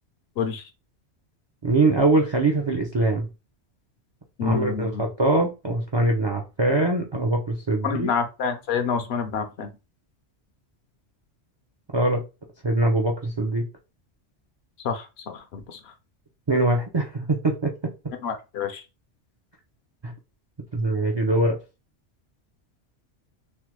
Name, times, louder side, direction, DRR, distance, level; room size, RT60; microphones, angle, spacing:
voice 1, 1.6-3.3 4.4-8.1 11.9-12.2 12.6-13.6 16.5-17.7 20.0-20.1 20.7-21.6, right 2 dB, 45° right, 0 dB, 0.3 m, -22 dB
voice 2, 4.4-5.1 7.8-9.7 14.8-15.8 18.2-18.8, left 6 dB, 65° left, 7 dB, 0.8 m, -28 dB
3.2 x 2.1 x 3.0 m, 0.28 s
omnidirectional pair, 1.2 m